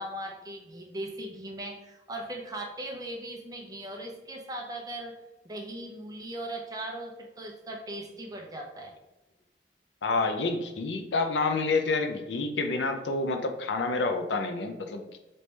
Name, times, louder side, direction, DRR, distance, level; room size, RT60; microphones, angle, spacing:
voice 1, 0.0-5.2 5.4-8.9, right 1 dB, 20° right, 1 dB, 0.7 m, -39 dB
voice 2, 10.0-15.2, left 3 dB, 85° left, 6 dB, 0.6 m, -28 dB
4.0 x 3.3 x 3.3 m, 1.0 s
head